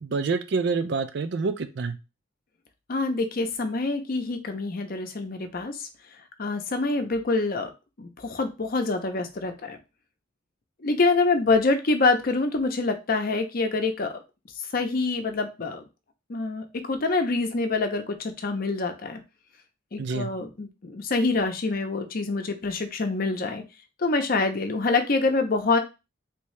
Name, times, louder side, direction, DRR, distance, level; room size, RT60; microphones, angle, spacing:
voice 1, 0.0-2.0 20.0-20.3, right 4 dB, 60° right, 10 dB, 0.4 m, -27 dB
voice 2, 2.9-5.9 6.4-7.7 8.0-9.8 10.8-14.2 14.7-15.8 16.3-19.2 19.9-23.6 24.0-25.8, left 3 dB, 50° left, 7 dB, 0.6 m, -26 dB
3.4 x 2.7 x 3.2 m, 0.27 s
head